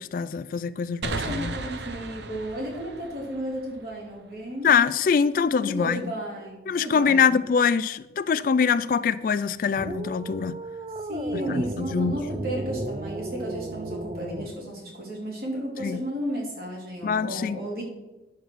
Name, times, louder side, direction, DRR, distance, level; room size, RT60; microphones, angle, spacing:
voice 1, 0.0-1.6 4.6-6.0 6.7-10.6 11.3-12.1 15.8-16.0 17.0-17.6, left 6 dB, 50° left, 0.3 m, -24 dB
sound 1, 1.0-4.5, right 3 dB, 75° right, 0.8 m, -36 dB
voice 2, 1.2-4.7 5.6-7.3 11.1-17.8, equal, 55° right, 3.2 m, -33 dB
sound 2, 9.7-14.5, right 2 dB, 30° right, 0.4 m, -34 dB
9.3 x 6.8 x 6.2 m
head